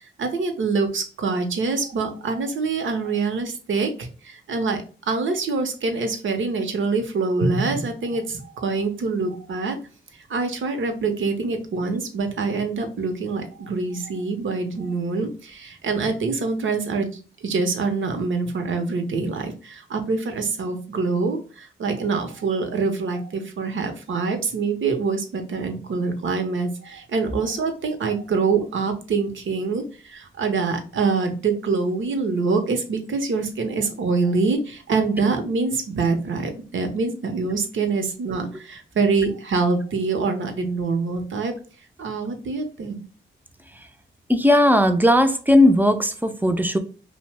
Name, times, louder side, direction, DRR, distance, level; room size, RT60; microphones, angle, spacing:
voice 1, 0.0-9.8 10.3-41.5 42.0-43.0, right 4 dB, 70° right, 6 dB, 0.7 m, -25 dB
voice 2, 44.3-46.8, left 1 dB, 10° right, 7 dB, 0.4 m, -17 dB
2.7 x 2.1 x 3.2 m, 0.37 s
cardioid pair, 70°, 21 cm